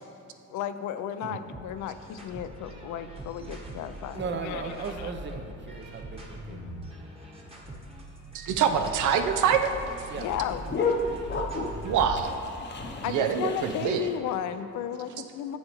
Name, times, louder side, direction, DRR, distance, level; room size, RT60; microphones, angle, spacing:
voice 1, 0.5-5.1 6.5-6.9 10.1-10.6 13.0-15.6, left 9 dB, 75° left, 11 dB, 0.5 m, -34 dB
sound 1, 1.5-12.3, right 2 dB, 20° right, 1.2 m, -43 dB
voice 2, 4.1-6.6 10.1-10.3, right 4 dB, 40° right, 6 dB, 0.6 m, -36 dB
voice 3, 8.3-10.1 11.8-12.3 13.1-14.1, right 7 dB, 80° right, 7 dB, 0.6 m, -25 dB
sound 2, 8.5-14.2, left 3 dB, 35° left, 0.7 m, -33 dB
7.9 x 7.1 x 3.0 m, 2.8 s
cardioid pair, 90°, 30 cm